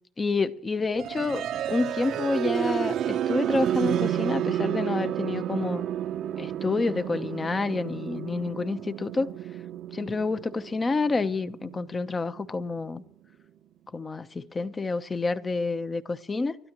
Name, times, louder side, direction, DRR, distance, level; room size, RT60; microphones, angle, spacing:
voice 1, 0.2-5.8 6.4-9.3 9.9-13.0 13.9-16.6, left 3 dB, 25° left, 0.8 m, -28 dB
sound 1, 1.0-12.9, right 11 dB, 60° right, 0.7 m, -31 dB
30.0 x 12.5 x 3.0 m
cardioid pair, 105°, 0 cm